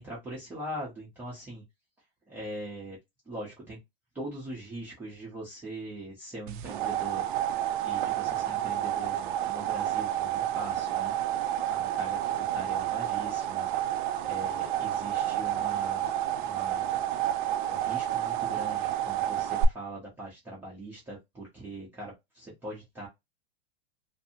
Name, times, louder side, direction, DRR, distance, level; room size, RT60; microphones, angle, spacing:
voice 1, 0.0-1.6 2.3-3.0 3.3-3.8 4.1-7.2 7.8-11.1 11.7-13.7 14.2-16.1 16.4-17.0 17.7-23.1, right 1 dB, 5° right, -7 dB, 0.6 m, -41 dB
sound 1, 6.5-19.6, right 12 dB, 50° right, 0.4 m, -30 dB
2.6 x 2.5 x 2.6 m, 0.19 s
supercardioid pair, 165°, 32 cm